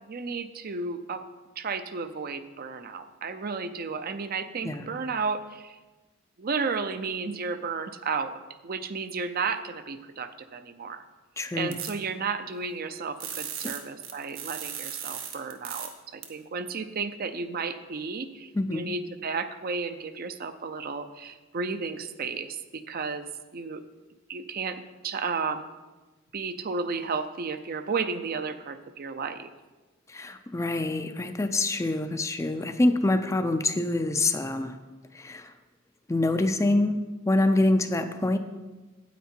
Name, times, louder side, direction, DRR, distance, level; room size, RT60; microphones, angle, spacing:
voice 1, 0.0-1.2 1.6-5.7 6.4-8.3 8.6-11.0 11.5-23.3 23.5-23.8 24.3-25.7 26.3-29.5, right 4 dB, 50° right, 10 dB, 0.5 m, -33 dB
voice 2, 11.4-11.8 18.5-18.9 30.1-34.8 35.1-35.5 36.1-38.4, left 2 dB, 15° left, 8 dB, 0.4 m, -26 dB
sound 1, 11.7-11.9 13.2-15.9 16.2-16.3, right 8 dB, 80° right, 1.1 m, -36 dB
9.2 x 8.3 x 4.4 m, 1.2 s
head